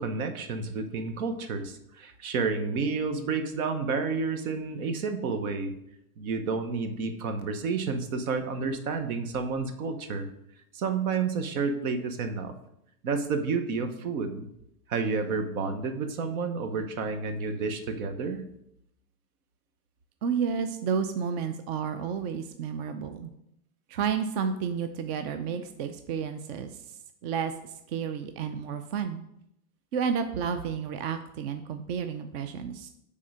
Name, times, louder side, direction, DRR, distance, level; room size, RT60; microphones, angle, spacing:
voice 1, 0.0-5.7 6.2-10.3 10.7-12.5 13.0-14.5 14.9-18.4, right 4 dB, 70° right, 8 dB, 1.2 m, -30 dB
voice 2, 20.2-23.3 23.9-26.7 27.2-27.5 27.9-29.2 29.9-32.9, right 7 dB, 45° right, 8 dB, 0.5 m, -31 dB
8.4 x 3.7 x 5.0 m, 0.79 s
supercardioid pair, 140°, 44 cm